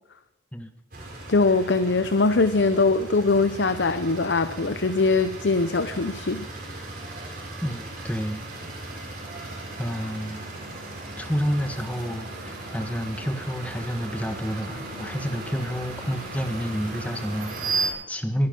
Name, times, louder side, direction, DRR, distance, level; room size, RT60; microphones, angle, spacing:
sound 1, 0.9-17.9, right 3 dB, 55° right, 5.5 m, -36 dB
voice 1, 1.3-6.5, left 3 dB, 75° left, 11 dB, 0.7 m, -22 dB
voice 2, 7.6-8.4 9.8-10.4 11.2-18.5, equal, 10° left, 6 dB, 1.4 m, -29 dB
23.0 x 11.0 x 5.3 m, 0.90 s
head